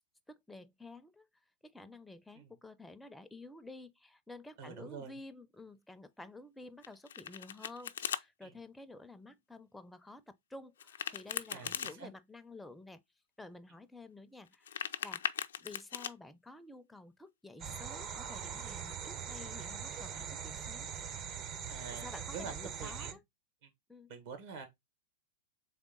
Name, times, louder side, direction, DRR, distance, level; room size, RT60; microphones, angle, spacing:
voice 1, 0.3-1.3 1.6-13.0 13.4-15.2 15.6-20.9 21.9-23.2 23.9-24.1, left 2 dB, 5° left, 0.5 m, -51 dB
voice 2, 4.6-5.2 8.4-8.5 11.5-12.1 21.7-22.1 22.3-23.2 24.1-24.7, right 6 dB, 65° right, 1.8 m, -46 dB
Domestic sounds home sounds, 6.8-8.2 10.8-11.9 14.5-16.1, left 8 dB, 85° left, 0.4 m, -39 dB
sound 1, 17.6-23.1, right 7 dB, 35° right, 0.7 m, -42 dB
3.6 x 3.5 x 3.7 m
hypercardioid pair, 115°, 0 cm